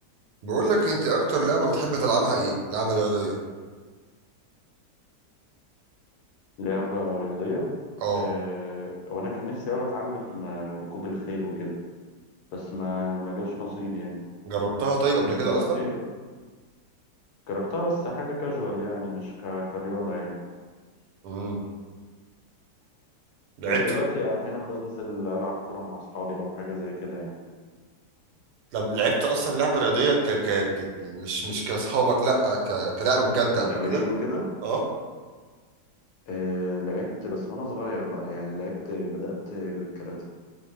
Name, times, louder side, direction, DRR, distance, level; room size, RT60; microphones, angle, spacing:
voice 1, 0.4-3.3 8.0-8.3 14.4-15.8 21.2-21.6 23.6-24.0 28.7-34.0 34.6-34.8, right 3 dB, 85° right, -1 dB, 1.2 m, -25 dB
voice 2, 6.6-7.6 8.1-11.7 12.5-14.2 15.2-16.0 17.5-20.3 23.6-27.3 33.5-34.4 36.3-40.2, left 2 dB, 75° left, -2 dB, 1.1 m, -31 dB
2.7 x 2.1 x 3.2 m, 1.5 s
omnidirectional pair, 1.8 m